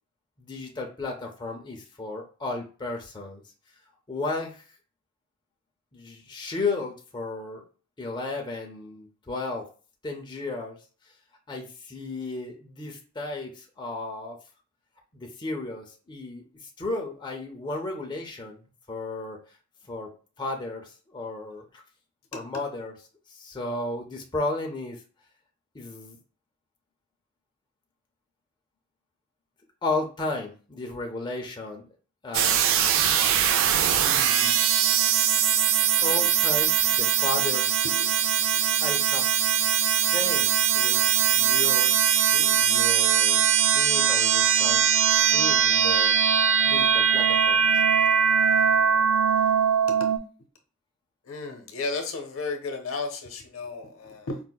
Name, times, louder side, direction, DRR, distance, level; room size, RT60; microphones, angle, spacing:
voice 1, 0.4-3.4 4.1-4.6 5.9-7.6 8.0-9.7 10.0-10.8 11.5-14.4 15.1-18.6 18.9-19.4 19.9-20.1 20.4-21.8 22.3-23.0 23.3-25.0 25.7-26.2 29.8-31.9 32.2-32.6 34.0-34.6 36.0-37.8 38.8-39.3 40.1-41.0 41.3-43.4 43.7-44.9 45.3-46.4 46.6-47.8, left 2 dB, 20° left, 0 dB, 0.5 m, -34 dB
sound 1, 32.3-50.2, right 8 dB, 65° right, 0.3 m, -21 dB
voice 2, 51.3-54.4, left 3 dB, 75° left, 4 dB, 0.7 m, -33 dB
4.7 x 2.0 x 2.2 m, 0.38 s
head